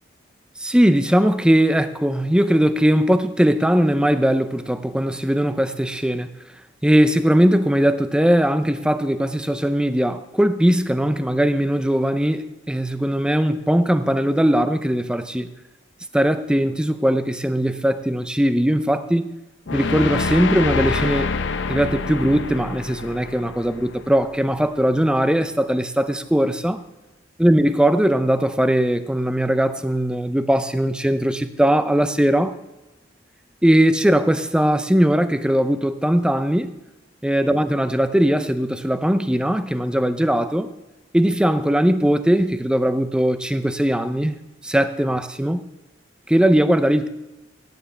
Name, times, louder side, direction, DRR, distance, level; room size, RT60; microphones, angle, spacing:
voice 1, 0.6-6.3 6.8-15.5 16.1-19.3 19.7-21.3 21.7-26.8 27.4-32.5 33.6-36.8 37.2-40.7 41.1-44.4 44.6-45.6 46.3-47.1, equal, 5° right, 11 dB, 0.5 m, -19 dB
sound 1, 19.7-24.7, left 4 dB, 75° left, 0.6 m, -27 dB
15.5 x 9.7 x 3.3 m, 1.0 s
head